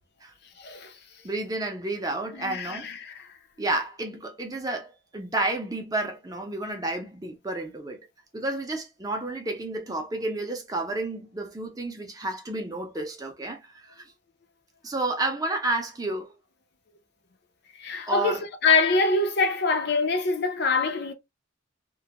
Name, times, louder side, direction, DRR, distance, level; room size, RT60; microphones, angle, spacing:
voice 1, 0.6-0.9 2.3-3.3 17.8-21.1, left 4 dB, 55° left, 0.5 m, -24 dB
voice 2, 1.2-2.9 3.6-8.0 8.3-14.0 14.8-16.3 18.1-18.4, right 2 dB, 20° right, 0.5 m, -31 dB
2.2 x 2.1 x 2.8 m
head